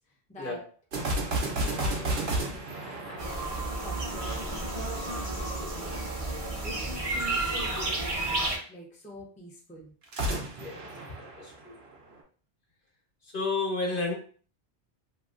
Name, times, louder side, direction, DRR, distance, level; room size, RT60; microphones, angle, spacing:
voice 1, 0.3-0.6 1.2-9.9, equal, 10° left, -2 dB, 0.5 m, -46 dB
sound 1, 0.9-4.4 10.0-12.1, right 1 dB, 80° right, 1.0 m, -32 dB
sound 2, 3.2-8.6, right 2 dB, 35° right, 0.7 m, -31 dB
voice 2, 11.2-11.8 13.3-14.1, left 3 dB, 60° left, -2 dB, 1.0 m, -31 dB
2.8 x 2.7 x 2.5 m, 0.43 s
omnidirectional pair, 1.0 m